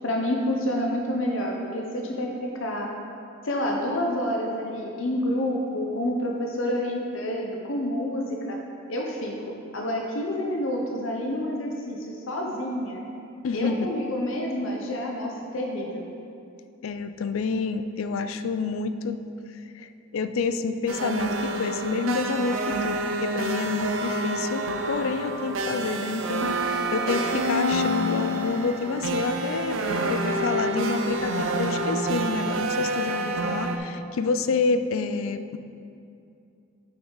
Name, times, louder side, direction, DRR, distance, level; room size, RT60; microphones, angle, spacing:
voice 1, 0.0-2.3 2.6-2.9 3.4-8.6 8.9-9.3 9.7-13.0 13.5-16.1, left 1 dB, 70° left, 0 dB, 0.8 m, -28 dB
voice 2, 13.4-13.9 16.8-19.2 19.7-29.8 30.1-35.6, left 4 dB, 85° left, 10 dB, 0.4 m, -28 dB
sound 1, 20.9-33.8, right 1 dB, 75° right, 0.6 m, -27 dB
8.6 x 6.0 x 3.9 m, 2.6 s
head